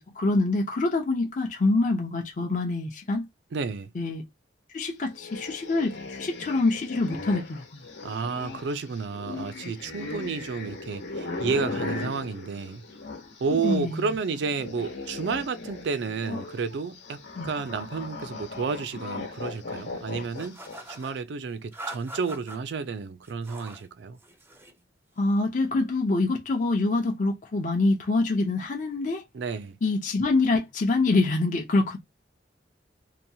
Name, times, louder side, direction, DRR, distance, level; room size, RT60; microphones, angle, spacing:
voice 1, 0.0-3.3 3.9-4.3 4.7-7.8 13.6-14.0 17.4-17.5 25.2-29.2 29.8-32.0, left 2 dB, 45° left, 0.5 m, -25 dB
voice 2, 3.5-3.9 8.0-12.8 13.4-20.6 20.9-24.2 29.3-29.8, right 5 dB, 75° right, 0.4 m, -31 dB
sound 1, 5.1-13.9 14.2-21.0, left 3 dB, 80° left, 0.9 m, -38 dB
sound 2, 20.3-21.1 21.7-22.6 23.2-23.9 24.2-24.8, right 1 dB, 10° right, 0.5 m, -42 dB
2.8 x 2.2 x 2.7 m
head